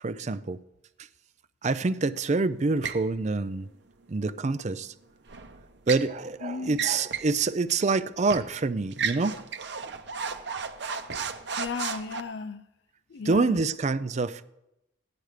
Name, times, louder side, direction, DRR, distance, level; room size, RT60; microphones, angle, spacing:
voice 1, 0.0-0.6 1.6-3.7 4.1-4.9 5.9-9.4 13.3-14.4, right 3 dB, 35° right, 0.4 m, -26 dB
sound 1, 2.8-3.1 5.3-6.1 6.7-7.4 7.7-7.8 8.3-8.5 8.9-12.2, right 6 dB, 60° right, 0.8 m, -34 dB
voice 2, 6.4-6.9 11.6-12.6 13.1-13.7, left 5 dB, 65° left, 0.5 m, -35 dB
15.0 x 10.5 x 4.9 m
head